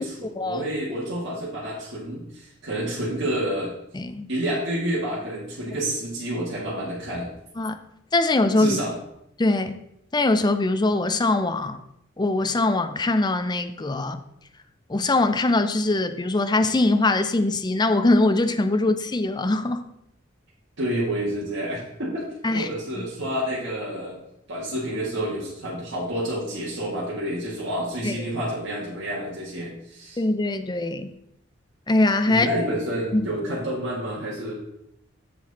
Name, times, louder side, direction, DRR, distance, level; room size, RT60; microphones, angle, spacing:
voice 1, 0.4-3.7 4.3-7.3 8.6-8.9 20.8-22.3 22.5-24.2 24.5-30.2 32.2-34.5, right 1 dB, 60° right, 2.1 m, -29 dB
voice 2, 3.9-4.3 7.6-7.8 8.1-8.8 9.4-9.8 10.1-11.8 12.2-14.2 14.9-19.8 22.4-22.7 23.0-23.1 28.0-28.1 30.2-31.1 31.9-32.5 33.1-33.3, left 2 dB, 20° left, 0.5 m, -22 dB
7.5 x 6.2 x 4.2 m
head